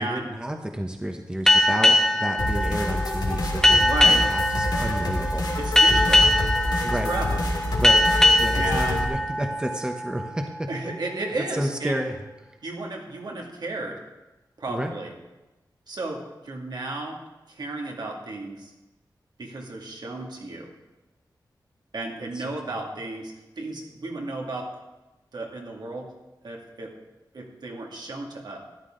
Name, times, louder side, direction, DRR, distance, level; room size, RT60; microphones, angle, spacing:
voice 1, 0.0-5.5 6.8-7.1 7.8-8.1 8.4-10.7 11.1-12.1 12.4-12.6 14.7-14.9 22.3-23.0, right 1 dB, 10° right, 3 dB, 1.0 m, -31 dB
sound 1, 1.5-10.6, left 1 dB, 5° left, 1.2 m, -21 dB
sound 2, 2.4-9.0, left 1 dB, 65° left, 2.4 m, -27 dB
voice 2, 3.8-4.2 5.6-6.3 7.0-7.4 8.5-9.0 10.7-12.0 12.6-14.0 14.6-15.1 15.9-17.2 17.5-18.7 19.4-20.7 21.9-24.7 25.3-26.1 26.4-26.9 27.3-28.6, right 2 dB, 70° right, 0 dB, 2.4 m, -33 dB
13.5 x 11.0 x 3.9 m, 1.1 s
wide cardioid pair, 110°, 8 cm